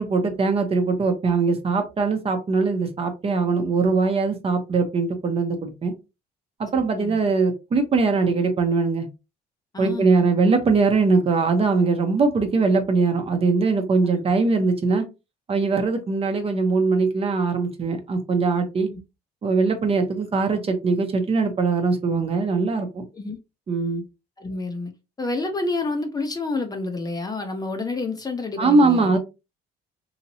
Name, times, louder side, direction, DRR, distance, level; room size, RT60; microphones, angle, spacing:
voice 1, 0.0-5.9 6.6-9.1 9.8-15.0 15.5-18.9 19.4-23.0 23.7-24.0 28.6-29.2, right 4 dB, 35° right, 0.8 m, -21 dB
voice 2, 6.7-7.2 9.7-10.3 18.9-19.0 23.1-23.4 24.4-24.9 25.2-29.2, left 3 dB, 25° left, 0.6 m, -29 dB
2.9 x 2.8 x 2.7 m
cardioid pair, 110°, 17 cm